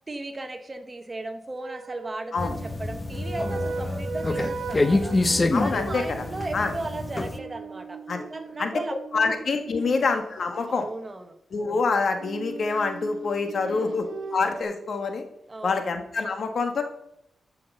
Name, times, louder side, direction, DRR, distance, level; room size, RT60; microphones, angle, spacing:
voice 1, 0.1-5.1 5.6-8.0 8.3-9.4 9.8-10.1 10.7-11.4 13.6-14.0 15.5-15.9, right 2 dB, 30° right, 8 dB, 1.2 m, -36 dB
sound 1, 1.6-10.7 12.2-14.6, right 4 dB, 85° right, 1.3 m, -38 dB
sound 2, 2.4-7.4, left 2 dB, 30° left, 0.7 m, -27 dB
voice 2, 5.5-6.0 6.5-6.7 8.1-8.2 8.6-8.7 9.1-10.9 11.5-14.0 14.3-15.2 15.6-16.8, left 4 dB, 60° left, 6 dB, 1.5 m, -26 dB
14.0 x 5.9 x 5.5 m, 0.79 s
cardioid pair, 70°, 0 cm